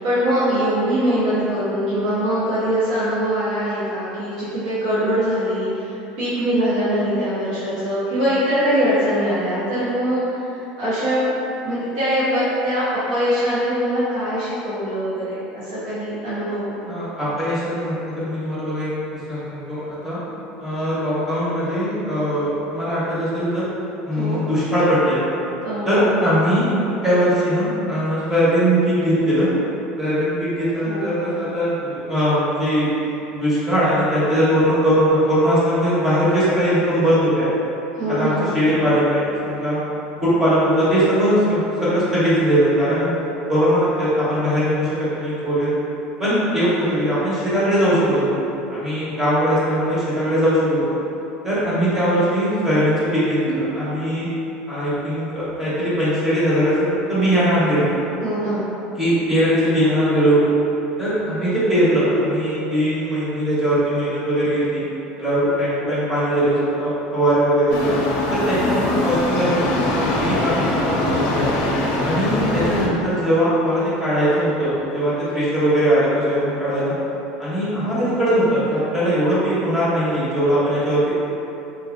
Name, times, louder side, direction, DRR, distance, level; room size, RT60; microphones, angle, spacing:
voice 1, 0.0-11.3 11.6-16.7 24.1-24.4 25.6-26.1 30.8-31.4 37.9-38.5 58.2-58.6, equal, 80° right, -12 dB, 1.1 m, -22 dB
voice 2, 16.9-18.9 19.3-20.2 20.6-23.7 24.1-25.2 25.8-26.7 27.0-29.5 30.0-32.9 33.3-37.5 38.1-39.8 40.2-43.1 43.5-45.7 46.2-48.4 48.7-51.0 51.4-54.3 54.7-57.9 59.0-60.4 61.0-64.8 65.2-67.9 68.3-71.6 72.0-76.9 77.4-81.2, equal, 10° right, -11 dB, 0.8 m, -20 dB
sound 1, 67.7-72.9, left 2 dB, 60° left, 0.5 m, -22 dB
3.8 x 2.6 x 2.5 m, 2.9 s
cardioid pair, 175°, 4 cm